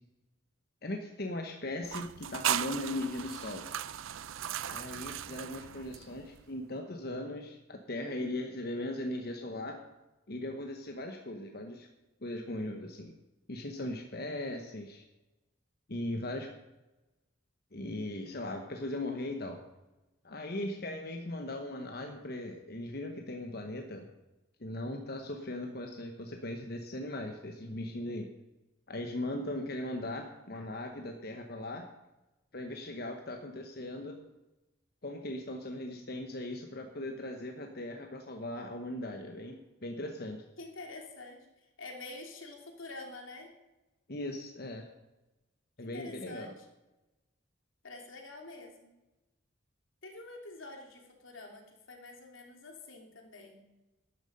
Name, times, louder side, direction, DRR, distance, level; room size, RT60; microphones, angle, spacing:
voice 1, 0.8-3.7 4.6-9.8 10.3-11.9 12.2-13.1 13.5-15.0 15.9-16.5 17.7-19.6 20.2-24.1 24.6-28.3 28.9-31.9 32.5-34.2 35.0-40.4 44.1-44.9 45.8-46.5, left 1 dB, 50° left, 4 dB, 1.1 m, -38 dB
sound 1, 1.8-6.4, right 10 dB, 85° right, 0.5 m, -37 dB
voice 2, 40.6-41.5 41.8-43.5 45.8-46.7 47.8-48.9 50.0-53.6, left 2 dB, 85° left, 2 dB, 2.7 m, -47 dB
12.5 x 10.5 x 5.3 m, 1.0 s
head